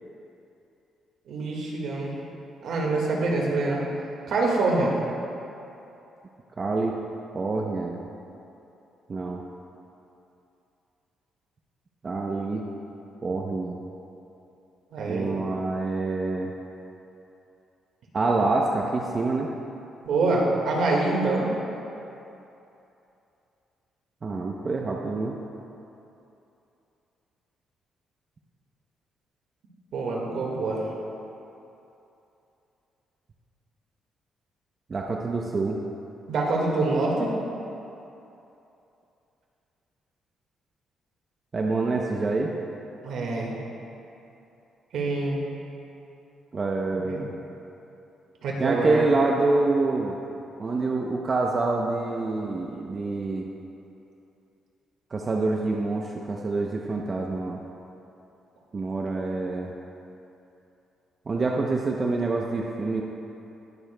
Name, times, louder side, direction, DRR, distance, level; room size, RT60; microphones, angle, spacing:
voice 1, 1.3-2.1 2.6-3.8 4.3-5.0 14.9-15.3 20.1-21.5 29.9-30.9 36.3-37.4 43.0-43.6 44.9-45.4 47.0-47.2 48.4-49.0, right 2 dB, 70° right, -2 dB, 1.7 m, -25 dB
voice 2, 6.6-7.0 7.3-8.0 9.1-9.4 12.0-12.6 13.2-13.8 15.1-16.5 18.1-19.5 24.2-25.4 34.9-35.8 41.5-42.5 46.5-47.3 48.6-50.2 50.6-53.5 55.1-57.6 58.7-59.7 61.3-63.0, right 3 dB, 35° right, 0 dB, 0.7 m, -26 dB
20.0 x 6.8 x 2.2 m, 2.8 s
cardioid pair, 90°, 0 cm